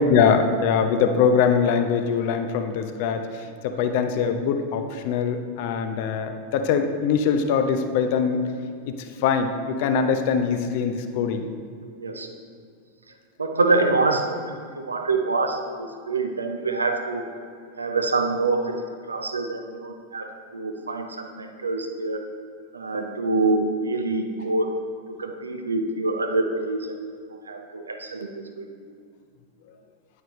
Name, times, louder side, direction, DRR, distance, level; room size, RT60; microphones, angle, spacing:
voice 1, 0.1-8.4 9.2-11.5, left 6 dB, 50° left, 7 dB, 0.7 m, -22 dB
voice 2, 13.4-17.3 17.8-22.2 22.7-24.7 25.2-26.9 27.5-28.3 28.6-28.7, right 3 dB, 75° right, 5 dB, 0.7 m, -25 dB
9.1 x 8.7 x 3.1 m, 2.2 s
figure-of-eight pair, 90°, 0 cm